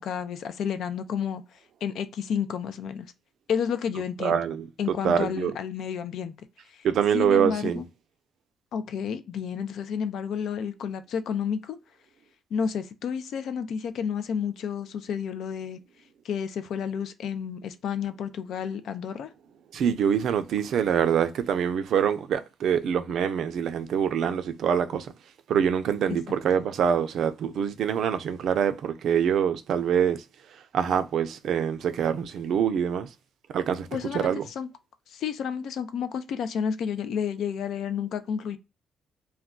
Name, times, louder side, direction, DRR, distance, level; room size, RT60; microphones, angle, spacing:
voice 1, 0.0-1.4 1.8-3.1 3.5-4.4 4.8-6.3 6.7-6.8 7.1-7.9 8.7-11.8 12.5-15.8 16.2-19.3 26.1-26.2 33.9-34.7 35.1-38.6, left 7 dB, 70° left, 0.4 m, -31 dB
voice 2, 4.2-5.5 6.8-7.8 19.7-25.1 25.5-30.2 30.7-33.1 33.5-33.9 34.1-34.4, right 8 dB, 70° right, 0.4 m, -25 dB
2.3 x 2.2 x 3.6 m
cardioid pair, 90°, 0 cm